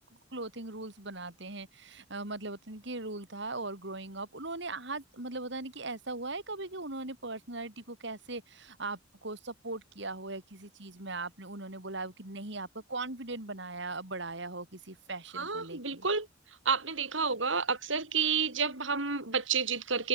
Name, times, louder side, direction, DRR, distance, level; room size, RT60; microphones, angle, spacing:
voice 1, 0.3-16.0, right 2 dB, 65° right, 4.2 m, -39 dB
voice 2, 15.3-16.3 16.6-20.1, right 5 dB, 80° right, 6.5 m, -30 dB
head